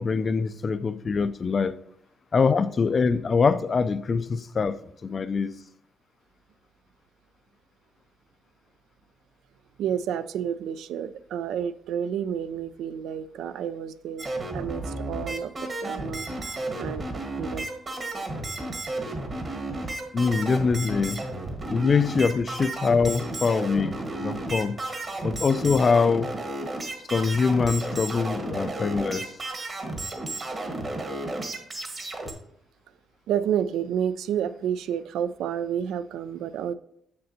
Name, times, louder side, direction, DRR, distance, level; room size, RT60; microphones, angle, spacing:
voice 1, 0.0-1.7 2.3-4.8 5.0-5.5 20.1-21.2 21.7-24.8 25.2-26.3 27.1-29.3, left 5 dB, 40° left, 0.3 m, -24 dB
voice 2, 9.8-14.3 14.5-17.0 17.4-17.7 33.3-36.7, right 9 dB, 80° right, 0.3 m, -30 dB
sound 1, 14.2-32.3, right 2 dB, 40° right, 1.3 m, -33 dB
6.6 x 6.6 x 2.7 m
cardioid pair, 90°, 0 cm